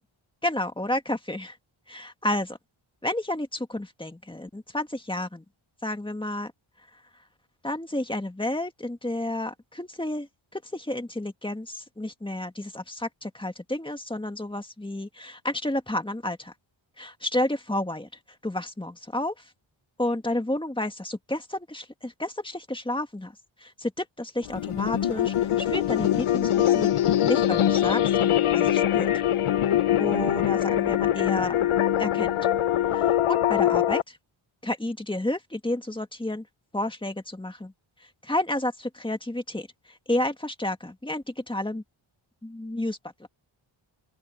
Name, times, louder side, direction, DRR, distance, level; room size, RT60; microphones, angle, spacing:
voice 1, 0.4-1.6 1.9-2.6 3.0-5.4 5.8-6.5 7.6-16.5 17.0-18.1 18.4-19.5 20.0-26.9 27.3-29.1 30.0-31.6 32.0-32.4 32.9-34.2 34.6-36.5 36.7-37.7 38.2-41.8 42.4-43.3, left 1 dB, 10° left, 1.8 m, -31 dB
sound 1, 24.4-34.0, left 11 dB, 85° left, 1.0 m, -23 dB
open air
wide cardioid pair, 115°, 49 cm